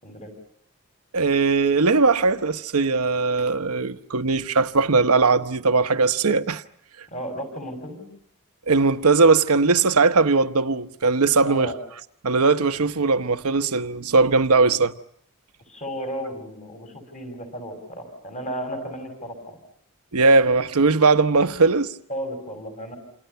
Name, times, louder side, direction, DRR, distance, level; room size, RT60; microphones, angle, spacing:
voice 1, 1.1-6.6 8.7-11.7 12.2-15.0 20.1-21.9, right 4 dB, 85° right, 1.0 m, -19 dB
voice 2, 7.1-8.0 11.4-11.7 15.6-19.6 22.1-23.0, equal, 30° left, 6.7 m, -34 dB
29.0 x 27.5 x 5.7 m
head